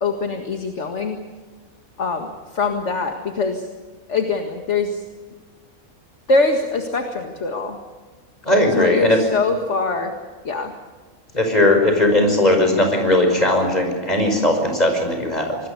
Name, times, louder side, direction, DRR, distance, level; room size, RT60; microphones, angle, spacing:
voice 1, 0.0-1.2 2.0-3.7 4.1-5.0 6.3-7.8 8.8-10.1 10.4-10.7, left 3 dB, 55° left, 4 dB, 2.2 m, -23 dB
voice 2, 8.5-9.2 11.3-15.6, left 1 dB, 30° left, 4 dB, 5.7 m, -18 dB
26.0 x 20.5 x 6.9 m, 1.3 s
omnidirectional pair, 1.5 m